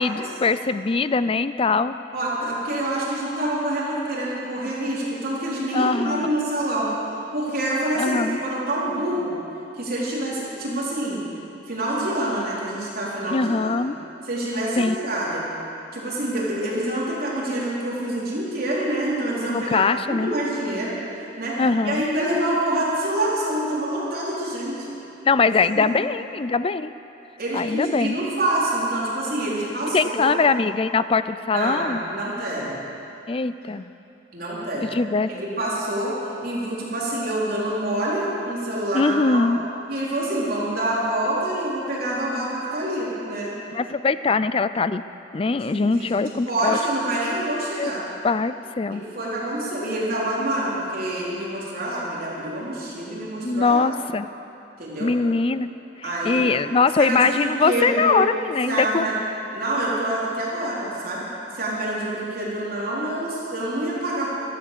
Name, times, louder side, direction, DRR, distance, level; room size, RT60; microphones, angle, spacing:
voice 1, 0.0-1.9 5.7-6.3 8.0-8.4 10.7-10.8 13.3-14.0 14.8-15.0 19.5-20.3 21.6-22.0 25.3-26.9 27.5-28.2 29.9-32.0 33.3-33.9 34.8-35.3 38.9-39.6 43.7-45.0 45.3-46.8 47.8-47.9 48.2-49.0 53.4-54.3 55.0-55.7 56.2-59.1, left 4 dB, 30° left, 13 dB, 0.4 m, -22 dB
voice 2, 2.1-6.9 7.3-9.3 9.7-11.2 11.6-13.8 14.2-15.4 15.9-24.9 25.7-26.0 27.4-30.3 31.5-32.8 34.3-34.8 35.3-36.1 36.4-39.4 39.9-43.5 45.5-48.0 48.9-53.8 54.8-55.1 56.0-56.5 57.0-58.2 58.7-59.2 59.5-61.3 61.5-64.3, right 1 dB, 55° right, -6 dB, 3.9 m, -26 dB
14.5 x 14.0 x 6.8 m, 2.8 s
head